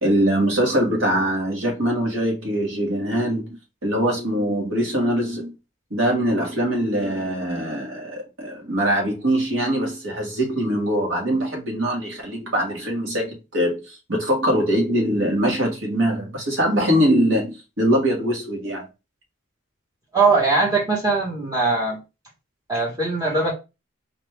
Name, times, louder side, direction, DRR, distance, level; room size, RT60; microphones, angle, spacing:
voice 1, 0.0-5.6 5.9-18.9, equal, 70° right, 1.7 m, -22 dB
voice 2, 20.1-22.0 22.7-23.5, right 3 dB, 15° right, 1.2 m, -20 dB
4.0 x 2.6 x 3.5 m
head